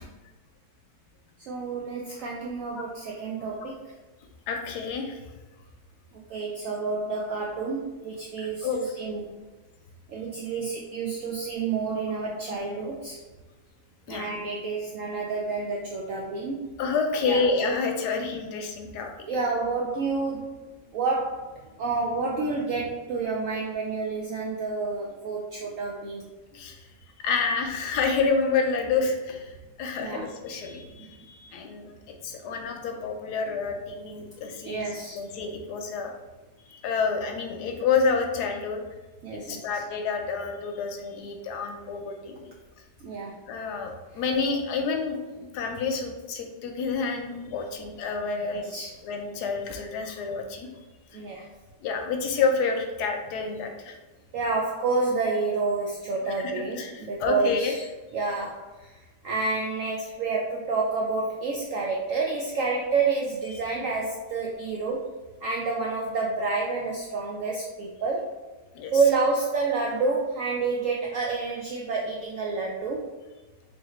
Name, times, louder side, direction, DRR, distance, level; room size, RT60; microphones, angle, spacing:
voice 1, 1.4-3.9 6.1-9.2 10.1-13.2 14.1-16.6 17.2-17.4 19.3-20.7 20.9-26.3 30.0-30.3 31.0-31.1 34.6-35.2 39.2-39.8 43.0-43.4 44.1-44.2 48.4-49.0 51.1-51.5 54.3-57.8 58.1-59.0 59.2-65.0 65.4-68.3 68.9-73.0, right 4 dB, 75° right, -2 dB, 0.7 m, -29 dB
voice 2, 4.5-5.2 8.4-8.9 14.1-14.3 16.8-19.1 26.5-26.7 27.2-31.9 32.2-34.9 35.1-36.1 36.7-38.8 39.3-42.5 43.5-48.8 49.0-50.7 51.8-54.0 56.4-57.8 68.7-68.9, left 4 dB, 75° left, 3 dB, 1.1 m, -29 dB
3.5 x 3.5 x 3.0 m, 1.2 s
omnidirectional pair, 1.9 m